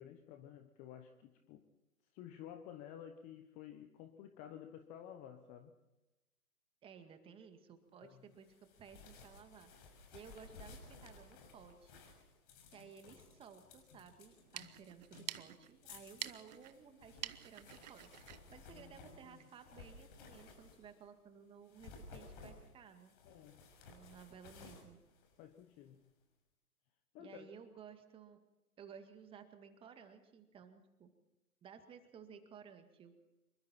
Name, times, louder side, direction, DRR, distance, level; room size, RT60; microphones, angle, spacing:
voice 1, 0.0-1.6 2.1-5.7 8.0-8.3 18.7-19.5 23.2-23.6 25.4-26.1 27.1-27.5, left 10 dB, 15° left, 8 dB, 1.0 m, -53 dB
voice 2, 6.8-9.7 10.1-11.9 12.7-18.1 18.5-23.1 23.9-25.0 27.2-28.4 28.8-31.1 31.6-33.1, right 7 dB, 10° right, 7 dB, 2.0 m, -56 dB
sound 1, 8.4-21.1 21.6-25.9, left 4 dB, 35° left, 6.5 m, -58 dB
sound 2, 14.3-19.6, right 13 dB, 30° right, 0.9 m, -50 dB
26.0 x 23.0 x 4.4 m, 1.0 s
figure-of-eight pair, 135°, 44 cm